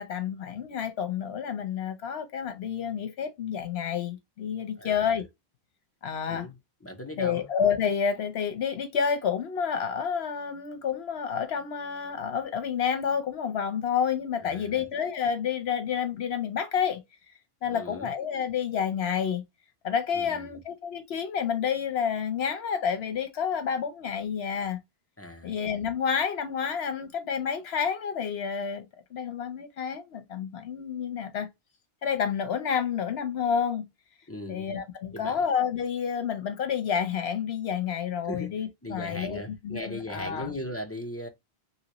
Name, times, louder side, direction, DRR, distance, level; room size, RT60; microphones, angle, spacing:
voice 1, 0.0-5.3 6.0-6.5 7.2-17.0 17.6-19.4 19.8-24.8 25.4-31.5 32.0-33.8 34.5-40.5, left 7 dB, 75° left, 1.0 m, -29 dB
voice 2, 4.8-5.2 6.3-6.5 6.8-7.5 14.4-14.9 17.7-18.1 20.1-20.6 25.2-25.5 34.3-34.7 35.1-35.5 38.2-41.3, left 1 dB, 20° left, 0.5 m, -38 dB
3.0 x 2.7 x 2.9 m
omnidirectional pair, 1.1 m